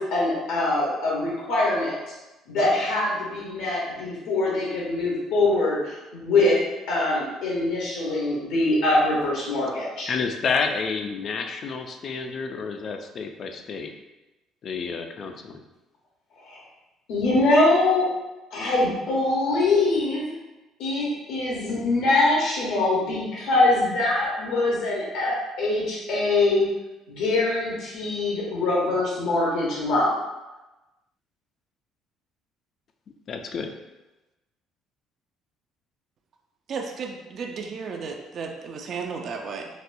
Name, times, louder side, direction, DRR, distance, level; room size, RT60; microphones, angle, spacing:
voice 1, 0.0-1.9 2.5-6.6 6.9-10.1 16.5-16.6 17.1-18.1 18.5-20.3 20.8-26.7 27.1-30.1, left 2 dB, 80° left, -5 dB, 0.9 m, -23 dB
voice 2, 10.1-13.9 14.6-15.6 33.3-33.7, left 5 dB, 40° left, 5 dB, 0.3 m, -29 dB
voice 3, 36.7-39.7, right 5 dB, 45° right, 2 dB, 0.3 m, -34 dB
4.1 x 2.2 x 2.6 m, 1.0 s
cardioid pair, 150°, 0 cm